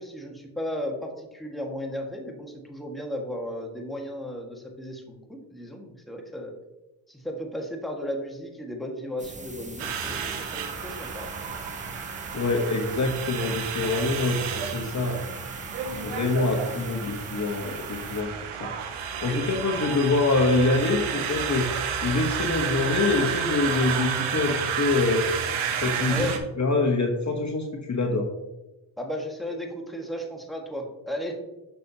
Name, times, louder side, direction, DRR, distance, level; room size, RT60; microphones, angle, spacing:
voice 1, 0.0-6.5 7.1-11.3 19.2-19.4 26.1-26.4 29.0-31.4, left 1 dB, ahead, 0 dB, 1.8 m, -35 dB
sound 1, 9.2-18.2, right 2 dB, 15° right, 1.0 m, -42 dB
sound 2, 9.8-26.4, right 7 dB, 90° right, 0.8 m, -31 dB
voice 2, 12.3-15.2 15.9-18.3 18.6-18.9 19.2-21.7 22.0-25.3 25.7-26.3 26.6-28.3, left 3 dB, 35° left, 1 dB, 1.2 m, -25 dB
6.8 x 6.0 x 2.9 m, 1.0 s
supercardioid pair, 45°, 48 cm